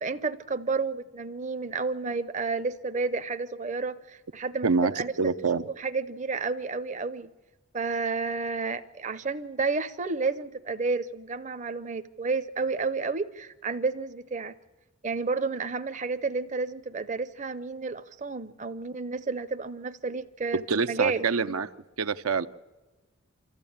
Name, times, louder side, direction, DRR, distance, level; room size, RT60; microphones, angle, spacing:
voice 1, 0.0-5.1 5.8-7.3 7.7-14.5 15.0-21.2, right 4 dB, 35° right, 11 dB, 0.6 m, -31 dB
voice 2, 5.2-5.7 20.7-21.7 22.0-22.5, right 4 dB, 90° right, 10 dB, 0.7 m, -26 dB
25.5 x 14.5 x 8.7 m, 1.2 s
head